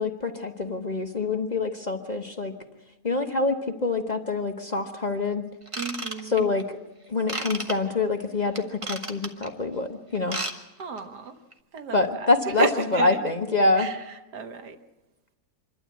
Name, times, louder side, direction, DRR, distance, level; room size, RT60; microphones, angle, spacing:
voice 1, 0.0-2.5 3.0-5.5 6.3-6.8 7.1-10.4 11.9-12.7 12.9-13.9, left 3 dB, 30° left, 4 dB, 0.9 m, -25 dB
Ratchet pawl / Tools, 5.7-6.6 7.3-7.7 8.5-9.5 10.1-10.5 10.8-11.0 11.5-11.6, right 2 dB, 20° right, 1.1 m, -32 dB
voice 2, 5.8-6.5 10.8-11.4 11.7-12.3 12.6-13.3 13.8-14.8, right 4 dB, 85° right, 7 dB, 1.8 m, -33 dB
26.0 x 12.0 x 8.3 m, 1.0 s
omnidirectional pair, 1.7 m